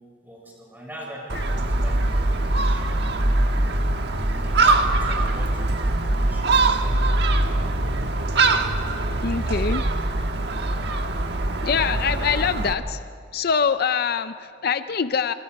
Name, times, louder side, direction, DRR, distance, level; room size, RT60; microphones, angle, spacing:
voice 1, 0.2-2.9 4.3-7.3, equal, 10° right, -2 dB, 6.2 m, -42 dB
Gull seagull, 1.3-12.7, right 2 dB, 65° right, 1.4 m, -22 dB
voice 2, 9.2-9.8 11.6-13.0 13.3-15.3, left 6 dB, 55° left, 12 dB, 0.5 m, -24 dB
26.5 x 25.5 x 4.7 m, 2.3 s
head